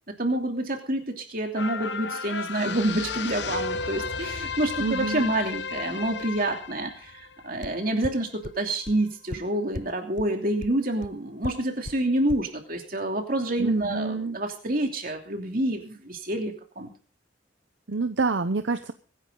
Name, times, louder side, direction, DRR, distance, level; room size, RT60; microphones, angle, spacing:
voice 1, 0.1-16.9, right 1 dB, 45° right, 3 dB, 2.9 m, -28 dB
sound 1, 1.5-8.2 8.6-8.7, left 5 dB, 65° left, 0.9 m, -33 dB
voice 2, 4.8-5.3 13.6-14.4 17.9-18.9, right 3 dB, 70° right, 9 dB, 0.8 m, -27 dB
sound 2, 7.6-7.7 8.0-8.1 8.4-8.5 8.9-9.0 9.3-9.4 9.7-9.8 10.2-10.3 10.6-10.7 11.0-11.1 11.4-11.5 11.9-12.0 12.3-12.4, left 2 dB, 40° left, 0.6 m, -33 dB
23.5 x 10.5 x 3.8 m, 0.38 s
head